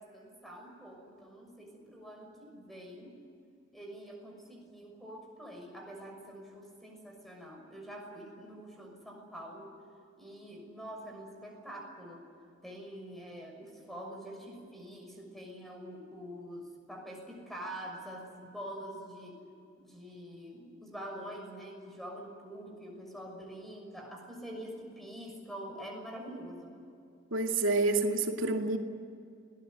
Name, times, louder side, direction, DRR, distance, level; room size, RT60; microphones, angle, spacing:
voice 1, 0.0-3.1 3.7-9.7 10.2-12.2 12.6-19.4 19.8-26.7, equal, ahead, 1 dB, 6.3 m, -45 dB
voice 2, 27.3-28.8, right 3 dB, 85° right, 3 dB, 2.4 m, -28 dB
28.5 x 19.0 x 9.4 m, 2.4 s
head